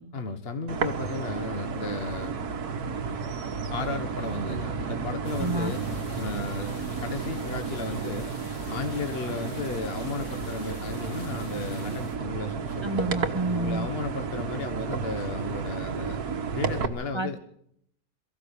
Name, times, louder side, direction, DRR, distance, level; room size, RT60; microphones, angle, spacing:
voice 1, 0.1-2.4 3.7-5.8 6.1-8.3 8.6-13.0 13.5-16.2 16.5-17.4, left 3 dB, 35° left, 7 dB, 1.5 m, -34 dB
sound 1, 0.7-16.9, right 5 dB, 60° right, 1.9 m, -32 dB
sound 2, 5.2-12.2, left 2 dB, 65° left, 3.5 m, -46 dB
voice 2, 5.4-5.8 12.8-13.9 17.1-17.4, right 2 dB, 20° right, 8 dB, 0.7 m, -29 dB
23.0 x 14.5 x 8.6 m, 0.70 s
omnidirectional pair, 1.9 m